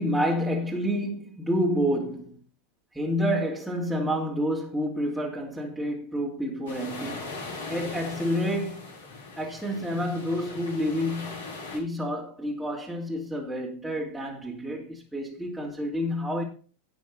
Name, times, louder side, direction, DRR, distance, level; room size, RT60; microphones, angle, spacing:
voice 1, 0.0-2.4 2.9-7.4 7.7-8.9 9.4-16.4, equal, ahead, 3.0 m, -29 dB
sound 1, 6.7-11.8, left 3 dB, 65° left, 6.7 m, -39 dB
17.5 x 6.3 x 4.1 m
figure-of-eight pair, 90°, 0 cm